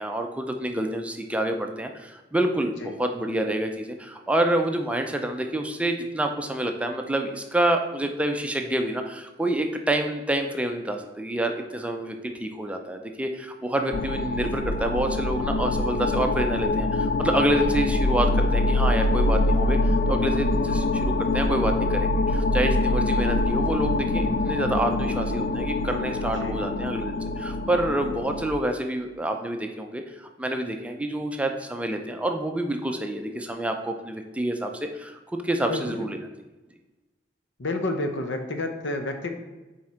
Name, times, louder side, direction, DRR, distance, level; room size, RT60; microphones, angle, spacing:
voice 1, 0.0-36.2, right 1 dB, 5° right, 4 dB, 0.5 m, -28 dB
voice 2, 13.8-14.2 26.4-26.6 35.7-36.1 37.6-39.3, left 2 dB, 80° left, 5 dB, 0.8 m, -30 dB
sound 1, 13.9-28.5, left 2 dB, 50° left, 0.4 m, -24 dB
6.0 x 4.3 x 4.3 m, 1.1 s
head